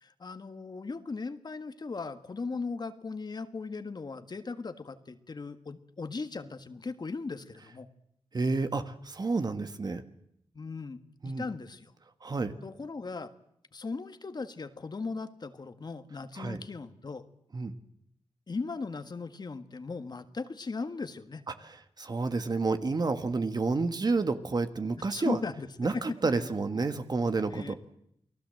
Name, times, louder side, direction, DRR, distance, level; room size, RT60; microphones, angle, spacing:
voice 1, 0.0-7.9 10.5-11.9 12.6-13.3 13.7-17.2 18.5-21.4 25.0-26.0 26.4-26.5 27.5-27.7, left 4 dB, 45° left, 9 dB, 1.7 m, -38 dB
voice 2, 8.3-10.0 11.2-11.4 12.2-12.5 16.4-16.6 17.5-17.8 22.0-25.4 25.8-27.7, right 3 dB, 40° right, 9 dB, 1.6 m, -30 dB
29.0 x 19.0 x 7.7 m, 0.75 s
cardioid pair, 70°, 10 cm